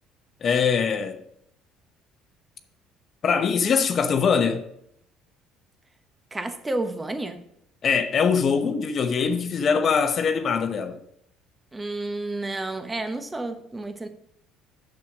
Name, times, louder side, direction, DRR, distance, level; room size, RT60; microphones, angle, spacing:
voice 1, 0.4-1.2 3.2-4.6 7.8-11.0, left 6 dB, 50° left, 0.9 m, -22 dB
voice 2, 6.3-7.4 11.7-14.1, right 2 dB, 20° right, 1.2 m, -30 dB
7.1 x 6.7 x 6.0 m
hypercardioid pair, 70°, 0 cm